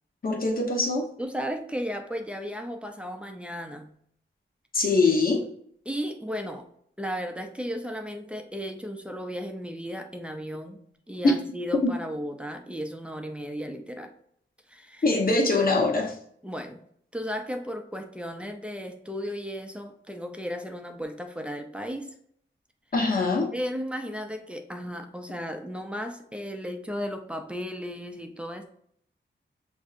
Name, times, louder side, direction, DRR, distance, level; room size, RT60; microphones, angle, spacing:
voice 1, 0.2-1.1 4.7-5.4 11.2-11.3 11.8-11.9 15.0-16.2 22.9-23.5, left 3 dB, 45° left, 1 dB, 0.9 m, -23 dB
voice 2, 1.2-3.9 5.9-6.7 7.0-10.8 11.1-14.1 14.7-15.0 16.4-16.8 17.1-22.1 23.5-28.6, equal, 5° right, 4 dB, 0.5 m, -35 dB
7.0 x 2.6 x 2.5 m, 0.65 s
wide cardioid pair, 135°, 20 cm